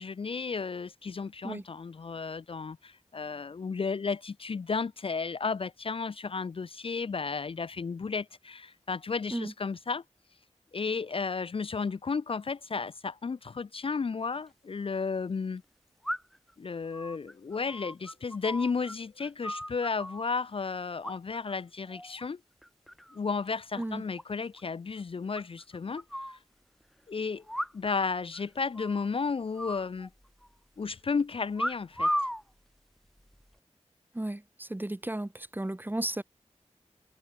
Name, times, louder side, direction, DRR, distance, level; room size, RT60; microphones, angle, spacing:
voice 1, 0.0-10.0 10.7-15.6 16.6-22.4 23.1-26.4 27.1-27.4 27.7-30.1 30.8-32.1, left 5 dB, 55° left, 0.4 m, -33 dB
sound 1, 14.2-14.3 16.0-16.5 16.9-19.0 19.2-20.2 21.0-21.6 21.9-22.2 22.6-23.2 23.5-23.6 23.8-23.9 24.2-24.3 24.6-24.7 25.4-26.4 27.5-28.1 28.3-28.4 28.7-29.1 29.6-30.5 31.6-32.4 33.2-33.5, equal, ahead, 1.5 m, -35 dB
voice 2, 34.1-36.2, right 1 dB, 15° right, 1.2 m, -34 dB
wide cardioid pair, 70°, 11 cm